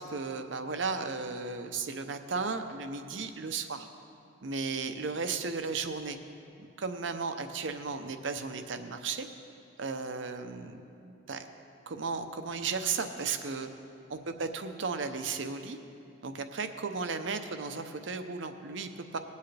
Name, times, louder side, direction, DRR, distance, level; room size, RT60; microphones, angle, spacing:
voice 1, 0.0-3.9 4.4-6.2 6.6-9.3 9.8-11.5 11.9-13.7 14.1-15.8 16.2-19.2, right 4 dB, 70° right, 8 dB, 0.7 m, -35 dB
19.5 x 8.2 x 3.3 m, 2.6 s
head